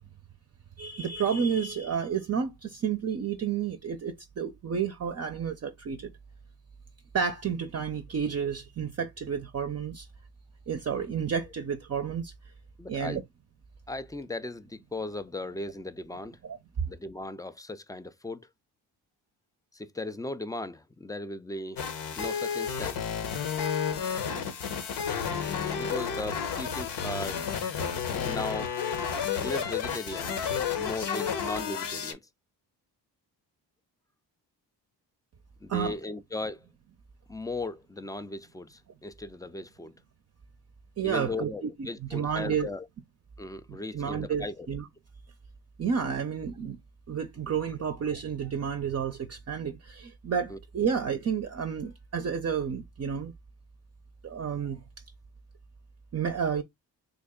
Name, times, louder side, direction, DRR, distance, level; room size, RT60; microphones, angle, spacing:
voice 1, 0.8-6.1 7.1-10.1 10.7-12.3 12.9-13.2 16.4-16.6 35.7-35.9 41.0-41.7 42.0-42.7 43.7-44.9 45.8-46.8 47.1-53.3 54.2-54.8 56.1-56.6, right 7 dB, 35° right, 0.6 m, -31 dB
voice 2, 12.8-13.2 13.9-16.4 16.9-18.5 19.7-21.8 22.2-23.1 25.7-27.5 28.2-28.7 29.4-30.4 30.8-32.2 35.6-36.7 37.3-40.0 41.0-42.9 43.4-44.7 50.5-50.6, left 2 dB, 10° left, 0.3 m, -37 dB
sound 1, 21.8-32.1, left 7 dB, 70° left, 1.0 m, -31 dB
3.5 x 2.2 x 3.6 m
cardioid pair, 65°, 42 cm